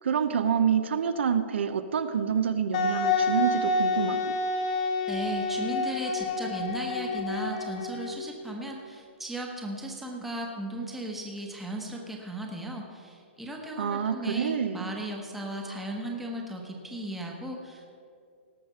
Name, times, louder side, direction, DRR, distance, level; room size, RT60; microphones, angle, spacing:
voice 1, 0.0-4.3 13.8-14.9, right 7 dB, 75° right, 10 dB, 0.9 m, -27 dB
Wind instrument woodwind instrument, 2.7-8.3, left 3 dB, 40° left, 1.3 m, -28 dB
voice 2, 5.1-17.9, right 1 dB, 5° right, 0 dB, 1.0 m, -36 dB
18.5 x 6.7 x 5.7 m, 2.4 s
hypercardioid pair, 175°, 6 cm